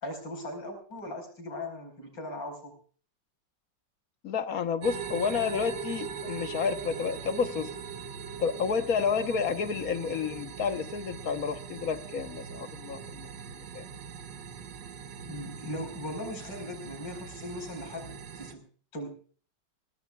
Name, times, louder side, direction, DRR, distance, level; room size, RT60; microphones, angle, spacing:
voice 1, 0.0-2.8 15.3-19.2, left 1 dB, 80° left, 5.6 m, -39 dB
voice 2, 4.2-7.7 8.4-13.3 13.6-13.9, left 6 dB, 55° left, 1.5 m, -30 dB
sound 1, 4.8-18.5, right 7 dB, 75° right, 1.7 m, -41 dB
23.5 x 17.5 x 2.4 m
omnidirectional pair, 1.9 m